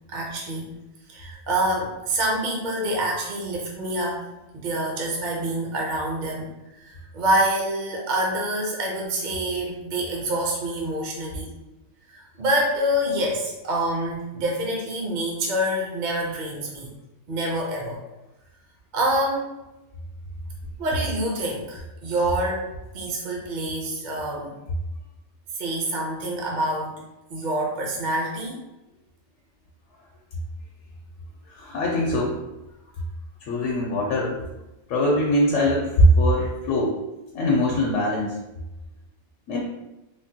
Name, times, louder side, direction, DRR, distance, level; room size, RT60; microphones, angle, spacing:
voice 1, 0.1-0.7 1.1-4.3 4.5-6.5 6.8-11.5 12.1-16.9 17.3-18.0 18.9-19.5 20.8-22.7 22.9-24.5 25.5-27.0 27.3-28.6, right 1 dB, 50° right, -2 dB, 0.6 m, -26 dB
voice 2, 31.5-32.4 33.4-34.4 34.9-37.0 37.3-38.4 39.5-39.6, equal, 80° left, -2 dB, 0.9 m, -21 dB
3.4 x 2.1 x 2.7 m, 1.0 s
omnidirectional pair, 1.3 m